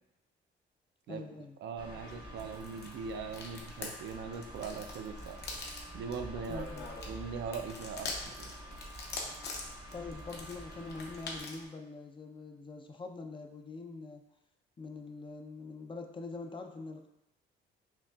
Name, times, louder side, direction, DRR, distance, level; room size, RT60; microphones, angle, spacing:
voice 1, 1.1-1.6 6.5-7.0 9.9-14.2 14.8-17.1, left 3 dB, 25° left, 4 dB, 0.4 m, -44 dB
voice 2, 1.6-5.4 5.9-6.6 7.1-8.5, right 5 dB, 65° right, 6 dB, 0.4 m, -40 dB
sound 1, 1.8-11.7, left 3 dB, 55° left, 0.8 m, -45 dB
sound 2, 1.8-11.4, right 1 dB, 25° right, 0.7 m, -48 dB
5.5 x 2.4 x 2.3 m, 0.86 s
cardioid pair, 90°, 20 cm